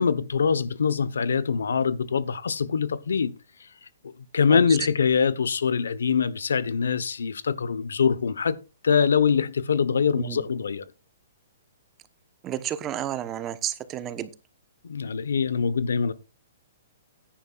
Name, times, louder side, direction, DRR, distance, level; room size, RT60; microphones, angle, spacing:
voice 1, 0.0-3.3 4.3-8.6 8.8-10.8 14.8-16.1, left 6 dB, 85° left, 1.0 m, -23 dB
voice 2, 10.1-10.5 12.4-14.3, right 11 dB, 20° right, 1.0 m, -32 dB
15.0 x 10.0 x 2.5 m
hypercardioid pair, 145°, 0 cm